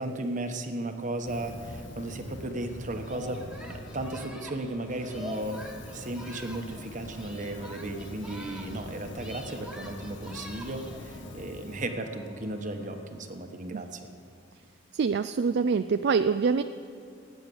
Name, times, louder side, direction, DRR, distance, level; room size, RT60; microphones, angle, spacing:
voice 1, 0.0-14.0, right 1 dB, 40° right, 6 dB, 1.2 m, -35 dB
Fire, 1.2-4.3 4.8-11.8, left 1 dB, 65° left, 1.3 m, -44 dB
Organ, 2.9-13.8, left 1 dB, 40° left, 2.6 m, -54 dB
Singing, 3.0-6.8 7.1-8.9 9.1-11.0, equal, 5° right, 1.5 m, -45 dB
voice 2, 14.9-16.6, right 5 dB, 55° right, 11 dB, 0.4 m, -25 dB
17.5 x 9.3 x 7.0 m, 2.7 s
head